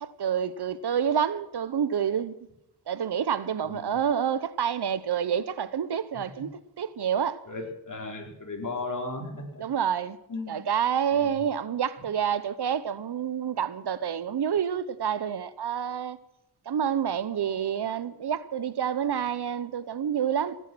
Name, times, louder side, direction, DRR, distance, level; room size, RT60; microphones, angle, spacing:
voice 1, 0.0-2.3 2.9-6.5 6.8-7.4 9.6-10.2 10.5-16.2 16.7-20.6, right 8 dB, 60° right, 0.8 m, -28 dB
voice 2, 3.7-4.0 6.1-6.4 7.4-9.6 10.3-10.7 11.1-11.4, left 3 dB, 45° left, 4.4 m, -36 dB
17.5 x 10.0 x 6.1 m
cardioid pair, 75°, 45 cm